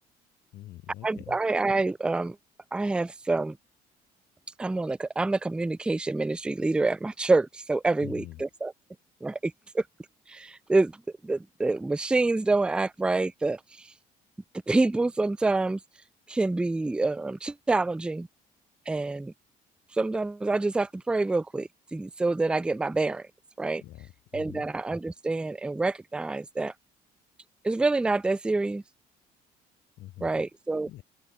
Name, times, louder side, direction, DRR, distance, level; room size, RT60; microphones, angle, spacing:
voice 1, 0.5-1.4 8.0-8.4 23.8-24.7 30.0-30.3 30.9-31.0, left 15 dB, 75° left, 3.6 m, -44 dB
voice 2, 1.0-2.4 2.7-3.6 4.6-8.7 9.2-9.8 10.3-11.0 11.2-13.9 14.7-15.8 16.3-18.3 18.9-19.3 19.9-23.3 23.6-23.8 24.3-26.7 27.6-28.8 30.2-30.9, right 3 dB, 5° right, 0.3 m, -27 dB
open air
cardioid pair, 110°, 17 cm